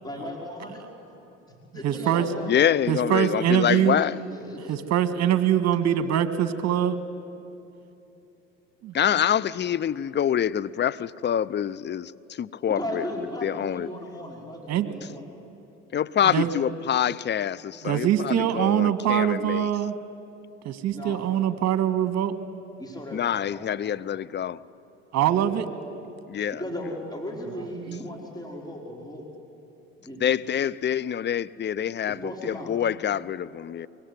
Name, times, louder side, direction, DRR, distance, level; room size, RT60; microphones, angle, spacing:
voice 1, 0.0-1.4 1.7-2.7 3.7-4.9 12.7-15.2 20.9-21.3 22.8-23.8 25.3-25.6 26.5-29.2 30.0-30.4 32.1-32.7, left 1 dB, 10° left, 0 dB, 5.0 m, -37 dB
voice 2, 1.8-2.3 2.9-4.0 4.7-7.0 8.8-8.9 14.7-14.9 16.2-16.5 17.8-19.9 20.6-22.3 25.1-25.7 27.8-28.0, right 10 dB, 55° right, 11 dB, 1.8 m, -23 dB
voice 3, 2.5-4.2 8.9-13.0 13.4-13.9 15.9-19.7 23.1-24.6 26.3-26.6 30.2-33.9, left 9 dB, 35° left, 18 dB, 0.6 m, -26 dB
24.0 x 22.5 x 9.8 m, 2.9 s
hypercardioid pair, 75°, 32 cm